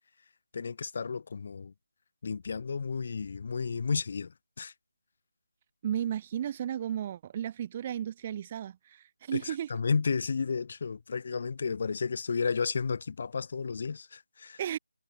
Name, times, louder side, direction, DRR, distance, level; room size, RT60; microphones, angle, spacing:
voice 1, 0.5-1.7 2.2-4.3 4.6-4.7 9.3-14.6, left 5 dB, 35° left, 7.1 m, -32 dB
voice 2, 5.8-9.7 14.6-14.8, right 10 dB, 20° right, 4.5 m, -34 dB
figure-of-eight pair, 160°, 0 cm